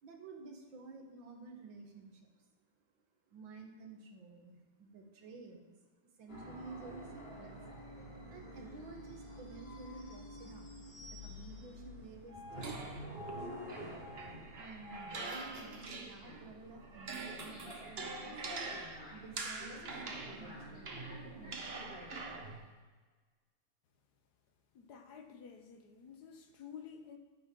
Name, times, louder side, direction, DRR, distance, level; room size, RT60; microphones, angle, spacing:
voice 1, 0.0-2.5 3.3-5.7 6.0-7.6 8.3-13.5 14.5-18.4 19.1-21.0 21.4-21.8, right 3 dB, 80° right, 3 dB, 2.1 m, -52 dB
sound 1, 6.3-22.6, equal, 30° left, 3.0 m, -49 dB
sound 2, 12.6-16.4 16.8-22.6, right 3 dB, 40° right, 1.0 m, -45 dB
voice 2, 24.7-27.2, left 7 dB, 60° left, 5 dB, 1.4 m, -51 dB
13.0 x 8.8 x 3.8 m, 1.4 s
omnidirectional pair, 2.1 m